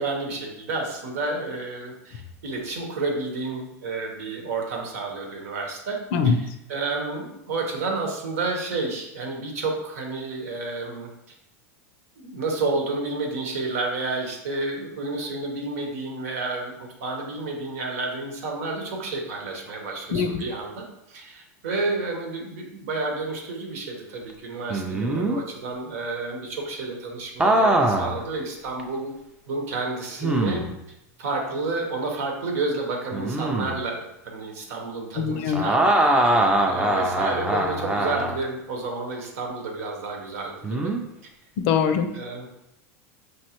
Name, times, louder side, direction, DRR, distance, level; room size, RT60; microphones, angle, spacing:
voice 1, 0.0-11.3 12.2-16.7 17.0-29.1 29.5-30.6 31.2-35.9 36.2-40.9 42.1-42.5, right 3 dB, 80° right, 2 dB, 1.1 m, -30 dB
sound 1, 24.7-25.4 27.4-28.2 28.8-28.9 30.2-30.8 33.1-33.8 35.5-38.4 40.6-41.0, right 1 dB, 10° right, 0.5 m, -22 dB
voice 2, 35.2-35.6 41.7-42.1, left 6 dB, 60° left, 8 dB, 0.5 m, -21 dB
5.3 x 3.2 x 2.9 m, 0.86 s
supercardioid pair, 135°, 8 cm